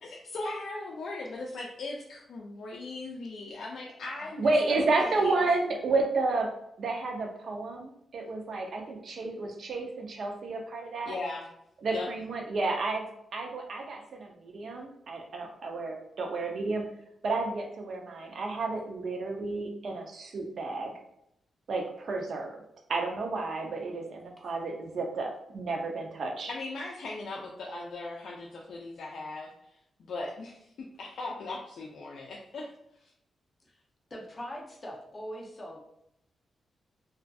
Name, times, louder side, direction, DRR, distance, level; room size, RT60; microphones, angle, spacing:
voice 1, 0.0-5.4 11.1-11.5 11.9-12.1 26.5-29.5 30.0-30.7 31.0-32.7 33.0-33.1, left 2 dB, 75° left, -3 dB, 0.3 m, -38 dB
voice 2, 4.4-6.5 6.8-11.1 11.8-16.8 17.2-20.9 21.7-22.6 22.9-26.5, right 3 dB, 60° right, 2 dB, 0.5 m, -31 dB
voice 3, 34.1-35.8, equal, 25° left, -2 dB, 0.6 m, -41 dB
2.5 x 2.3 x 2.3 m, 0.79 s
wide cardioid pair, 125°, 0 cm